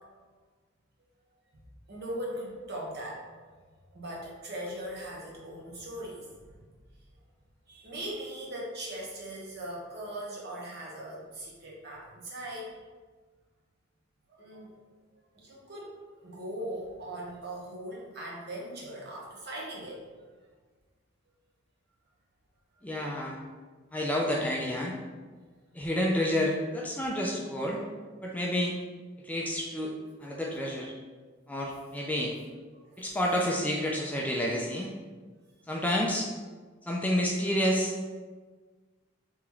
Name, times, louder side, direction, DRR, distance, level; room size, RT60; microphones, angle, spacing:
voice 1, 1.9-3.3 3.9-6.6 7.7-12.8 14.3-14.7 15.3-20.0 25.8-25.9 32.0-32.1 32.9-33.2, right 1 dB, 55° right, -3 dB, 0.9 m, -40 dB
voice 2, 22.8-23.4 23.9-25.0 25.7-27.8 28.2-28.7 29.2-29.9 30.2-30.9 31.5-32.3 33.0-34.9 35.7-36.3 36.9-37.9, equal, 10° left, -1 dB, 0.3 m, -29 dB
3.6 x 2.9 x 3.0 m, 1.4 s
head